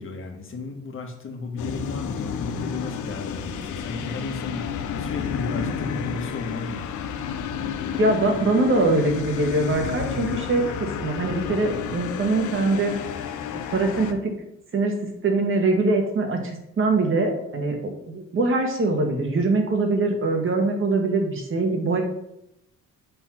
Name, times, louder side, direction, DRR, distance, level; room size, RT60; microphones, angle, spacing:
voice 1, 0.0-6.9, left 3 dB, 40° left, 2 dB, 1.8 m, -34 dB
sound 1, 1.6-14.1, left 7 dB, 80° left, 0.8 m, -31 dB
voice 2, 8.0-13.2 13.7-14.3 14.7-14.9 15.2-17.8 18.1-22.0, right 2 dB, 40° right, 2 dB, 1.9 m, -23 dB
7.8 x 4.1 x 6.0 m, 0.81 s
cardioid pair, 90°, 30 cm